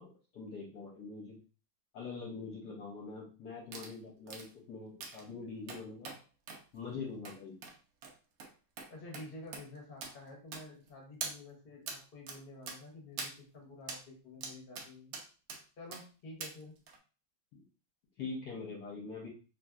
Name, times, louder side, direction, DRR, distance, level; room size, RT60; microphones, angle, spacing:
voice 1, 0.0-1.4 1.9-6.1 6.7-7.6 17.5-17.6 18.2-19.3, left 4 dB, 65° left, -3 dB, 1.1 m, -44 dB
sound 1, 3.7-3.9 4.3-4.5 5.0-5.2 5.7-6.2 6.5-6.6 7.2-7.4 7.6-7.7 8.0-8.1 8.4-8.5 8.8-8.9 9.1-9.3 9.5-9.6 10.0-10.1 10.5-10.9 11.2-11.3 11.9-12.0 12.3-12.4 12.7-12.8 13.2-13.3 13.9-14.0 14.4-14.9 15.1-15.6 15.9-16.0 16.4-16.5 16.9-17.0, right 4 dB, 85° right, 0.8 m, -42 dB
voice 2, 8.9-15.1 15.8-16.7, left 2 dB, 40° left, -1 dB, 0.8 m, -50 dB
3.1 x 2.6 x 2.3 m, 0.36 s
omnidirectional pair, 2.2 m